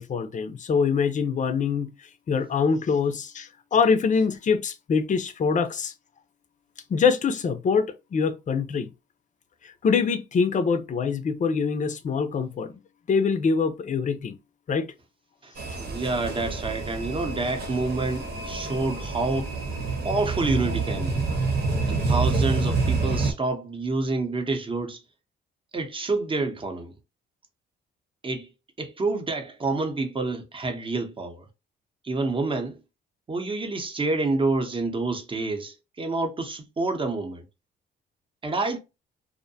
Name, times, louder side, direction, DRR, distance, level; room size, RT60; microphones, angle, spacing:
voice 1, 0.0-1.9 2.3-5.9 6.9-8.9 9.6-12.8 13.1-14.4 14.7-14.9, left 5 dB, 40° left, 0.5 m, -24 dB
voice 2, 15.4-19.6 20.0-21.2 21.8-25.0 25.7-26.9 28.2-28.5 28.8-31.4 32.0-32.8 33.3-37.5 38.4-38.8, right 3 dB, 25° right, 0.8 m, -28 dB
sound 1, 15.6-23.3, right 3 dB, 55° right, 0.9 m, -27 dB
2.6 x 2.1 x 2.6 m
cardioid pair, 90°, 20 cm